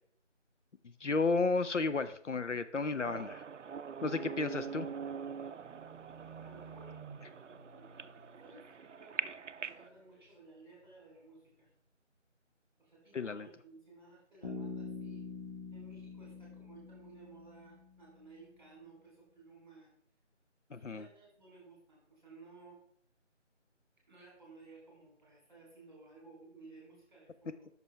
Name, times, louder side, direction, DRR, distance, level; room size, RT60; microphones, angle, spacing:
voice 1, 1.0-3.4 4.0-4.9 13.1-13.5 20.7-21.1, left 3 dB, 75° left, 11 dB, 0.6 m, -32 dB
sound 1, 3.0-9.9, right 6 dB, 70° right, 0.5 m, -43 dB
Livestock farm animals working animals, 4.6-9.4 9.6-10.3 10.8-10.9, right 5 dB, 55° left, 3.1 m, -55 dB
voice 2, 6.4-8.1 8.4-11.7 12.8-15.3 15.7-19.9 20.7-22.8 24.1-27.7, right 3 dB, 20° right, -3 dB, 3.1 m, -57 dB
Bass guitar, 14.4-18.1, left 4 dB, 40° left, 1.7 m, -45 dB
8.6 x 6.0 x 3.3 m, 0.64 s
figure-of-eight pair, 170°, 37 cm